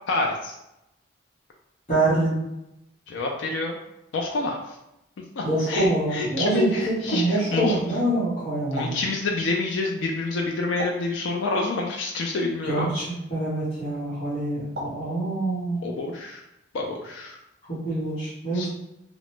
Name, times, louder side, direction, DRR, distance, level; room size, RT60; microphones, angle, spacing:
voice 1, 0.1-0.6 3.1-3.8 4.1-4.8 5.4-7.7 8.7-12.9 15.8-16.4 16.7-17.4 18.5-18.7, left 2 dB, 75° left, 0 dB, 0.4 m, -27 dB
voice 2, 1.9-2.4 5.4-9.0 12.6-15.9 17.6-18.7, right 2 dB, 35° left, -13 dB, 1.0 m, -25 dB
sound 1, 8.7-9.1 10.8-11.1 12.8-13.0 14.7-15.1, left 1 dB, 55° right, 0.7 m, -34 dB
2.9 x 2.0 x 3.2 m, 0.87 s
head